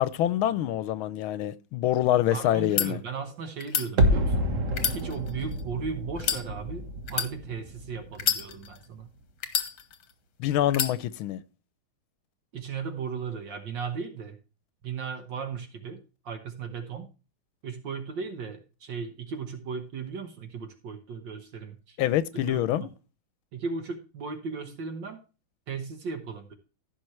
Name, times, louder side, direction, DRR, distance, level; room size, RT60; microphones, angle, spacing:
voice 1, 0.0-3.0 10.4-11.4 22.0-22.9, left 12 dB, 85° left, 1.5 m, -26 dB
voice 2, 2.3-4.5 4.9-9.1 12.5-14.4 14.8-17.1 17.6-22.0 22.3-22.9 23.5-25.2 25.7-26.5, right 5 dB, 65° right, 1.8 m, -36 dB
sound 1, 2.6-2.9 3.6-3.9 4.7-5.6 6.2-6.4 7.1-7.3 8.2-8.8 9.4-10.1 10.7-11.0, left 8 dB, 70° left, 1.9 m, -28 dB
sound 2, 4.0-8.9 9.2-9.3, equal, 40° right, 1.6 m, -28 dB
15.0 x 6.1 x 3.2 m
omnidirectional pair, 2.2 m